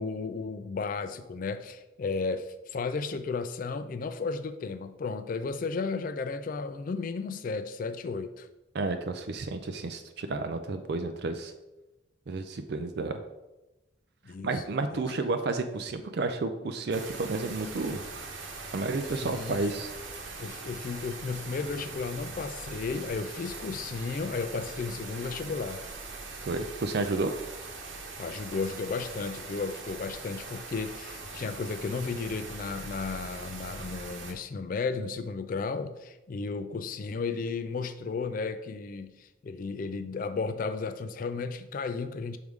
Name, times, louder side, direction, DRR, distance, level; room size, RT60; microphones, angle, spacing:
voice 1, 0.0-8.5 14.2-14.6 14.9-15.0 19.2-19.7 20.4-25.8 28.2-42.4, left 4 dB, 45° left, 10 dB, 0.3 m, -34 dB
voice 2, 8.7-11.5 12.3-13.2 14.4-18.0 18.7-19.9 26.5-27.3, right 3 dB, 55° right, 8 dB, 0.4 m, -31 dB
sound 1, 16.9-34.3, right 3 dB, 70° right, 1.0 m, -41 dB
6.4 x 4.7 x 3.5 m, 1.0 s
head